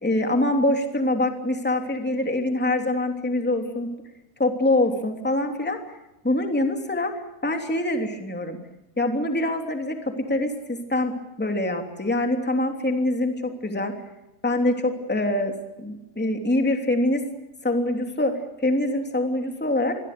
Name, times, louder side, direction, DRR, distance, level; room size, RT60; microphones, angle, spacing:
voice 1, 0.0-3.9 4.4-5.8 6.2-7.1 7.4-8.6 9.0-11.1 11.4-13.9 14.4-15.5 15.8-17.2 17.6-18.3 18.6-20.0, left 1 dB, 5° left, 4 dB, 2.2 m, -24 dB
27.5 x 22.0 x 6.8 m, 0.97 s
omnidirectional pair, 4.5 m